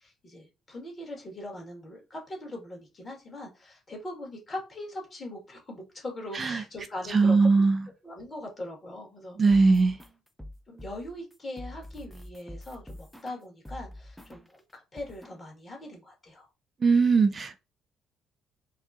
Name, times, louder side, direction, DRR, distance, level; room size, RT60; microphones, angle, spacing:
voice 1, 0.0-7.4 8.0-9.7 10.7-16.5, left 1 dB, 35° left, 1.9 m, -41 dB
voice 2, 7.1-7.8 9.4-10.0 16.8-17.6, right 4 dB, 40° right, 0.4 m, -20 dB
sound 1, 9.5-14.6 15.0-15.4, left 1 dB, 5° left, 0.6 m, -45 dB
4.1 x 2.4 x 2.7 m
figure-of-eight pair, 45°, 0 cm